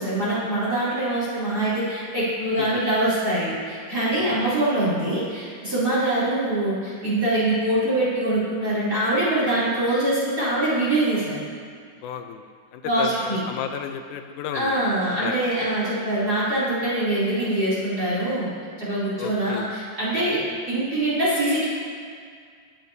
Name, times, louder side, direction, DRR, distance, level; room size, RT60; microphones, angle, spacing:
voice 1, 0.0-11.4 12.8-13.4 14.5-18.5 18.8-21.7, right 1 dB, 30° right, -10 dB, 3.2 m, -24 dB
voice 2, 2.6-2.9 4.2-4.6 12.0-15.4 19.2-19.8, left 8 dB, 80° left, 7 dB, 2.0 m, -34 dB
19.5 x 9.0 x 2.7 m, 2.1 s
omnidirectional pair, 3.7 m